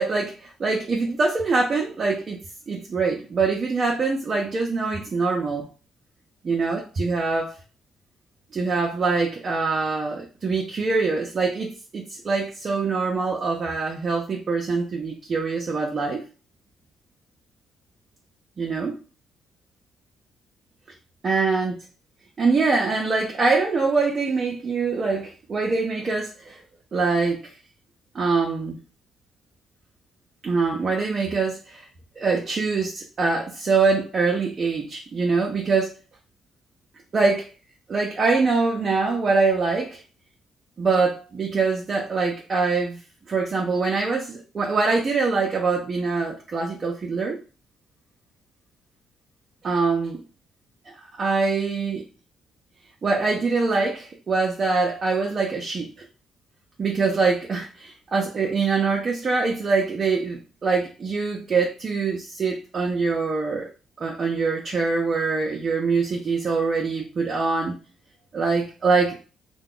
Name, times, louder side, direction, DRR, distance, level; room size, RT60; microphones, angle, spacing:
voice 1, 0.0-5.7 6.4-7.6 8.5-16.2 18.6-19.0 21.2-21.7 22.4-26.6 26.9-27.4 28.1-28.8 30.4-31.9 32.2-35.9 37.1-37.5 37.9-40.0 40.8-43.0 43.3-47.4 49.6-50.2 51.2-52.1 53.0-55.9 56.8-63.7 64.0-67.8 68.3-69.2, right 4 dB, 40° right, -1 dB, 0.6 m, -24 dB
2.9 x 2.2 x 3.7 m, 0.35 s
cardioid pair, 90°, 0 cm